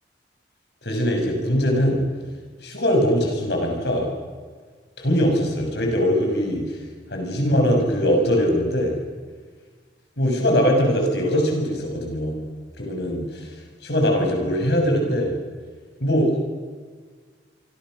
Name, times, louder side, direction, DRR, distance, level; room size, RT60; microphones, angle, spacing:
voice 1, 0.8-2.0 2.6-4.1 5.0-6.6 7.1-8.9 10.2-12.4 12.8-13.4 13.8-15.3 16.0-16.4, equal, 70° left, 2 dB, 6.4 m, -21 dB
27.0 x 24.0 x 6.5 m, 1.5 s
head